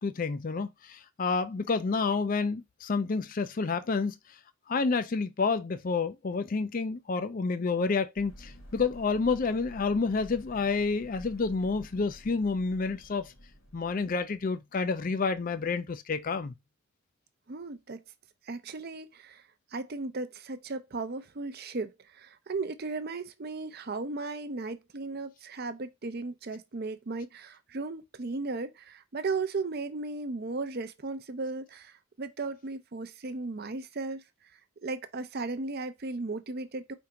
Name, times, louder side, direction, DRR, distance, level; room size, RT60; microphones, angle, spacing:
voice 1, 0.0-4.2 4.7-13.3 13.7-16.5, left 4 dB, 40° left, 0.4 m, -29 dB
sound 1, 8.2-14.4, equal, 60° left, 1.5 m, -50 dB
voice 2, 17.5-18.0 18.4-19.4 19.7-34.2 34.8-36.9, right 3 dB, 45° right, 0.6 m, -36 dB
4.8 x 3.5 x 2.8 m
head